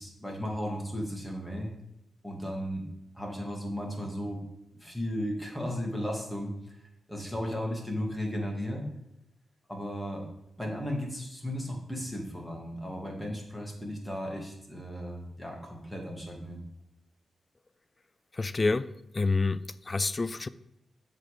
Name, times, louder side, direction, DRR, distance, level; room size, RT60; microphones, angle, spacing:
voice 1, 0.0-1.7 2.2-2.9 3.1-4.4 4.8-8.8 9.7-10.2 10.6-16.6, equal, 5° left, -1 dB, 2.4 m, -35 dB
voice 2, 18.3-20.5, left 3 dB, 40° left, 16 dB, 0.3 m, -28 dB
7.3 x 4.0 x 5.0 m, 0.82 s
supercardioid pair, 45°, 0 cm